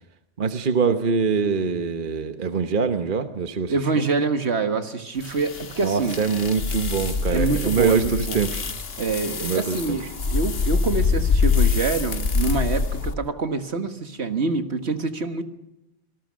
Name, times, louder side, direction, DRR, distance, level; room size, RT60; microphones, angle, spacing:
voice 1, 0.4-4.0 5.8-8.6 9.4-9.8, right 5 dB, 45° right, 8 dB, 1.2 m, -24 dB
voice 2, 3.7-6.2 7.3-8.4 9.0-15.4, right 4 dB, 65° right, 8 dB, 1.8 m, -26 dB
sound 1, 5.2-13.1, left 5 dB, 60° left, 1.6 m, -25 dB
26.0 x 19.0 x 6.3 m, 0.89 s
omnidirectional pair, 1.2 m